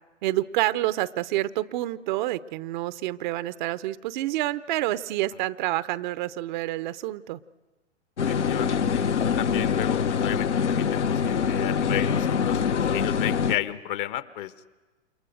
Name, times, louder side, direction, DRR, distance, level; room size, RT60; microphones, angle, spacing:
voice 1, 0.2-7.4, right 16 dB, 40° right, 15 dB, 0.8 m, -28 dB
sound 1, 8.2-13.6, left 6 dB, 75° left, 1.3 m, -24 dB
voice 2, 8.3-14.5, left 13 dB, 45° left, 12 dB, 1.2 m, -33 dB
29.5 x 28.0 x 6.5 m, 1.2 s
figure-of-eight pair, 105°, 35 cm